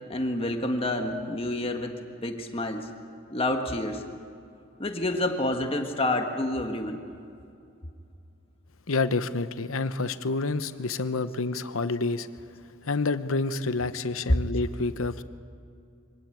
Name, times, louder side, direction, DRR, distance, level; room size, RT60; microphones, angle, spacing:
voice 1, 0.1-2.9 3.3-4.0 4.8-7.0, left 1 dB, 25° left, 4 dB, 1.6 m, -29 dB
voice 2, 8.9-12.3 12.9-15.2, left 3 dB, 70° left, 12 dB, 0.9 m, -28 dB
24.5 x 17.5 x 9.1 m, 2.5 s
head